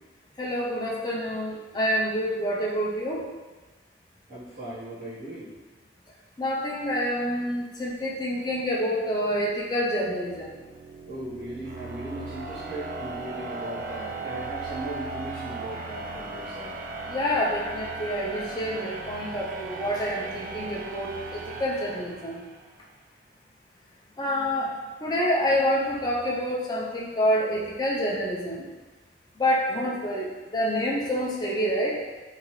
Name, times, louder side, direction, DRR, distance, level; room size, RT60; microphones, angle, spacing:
voice 1, 0.4-3.2 6.4-10.5 17.0-22.4 24.2-24.7 25.0-28.7 29.4-32.0, equal, 25° left, -4 dB, 0.5 m, -27 dB
voice 2, 4.3-5.5 11.1-16.8, right 1 dB, 85° right, -13 dB, 1.3 m, -38 dB
sound 1, 9.8-22.7, right 3 dB, 50° right, 0.3 m, -37 dB
3.8 x 2.4 x 3.0 m, 1.2 s
head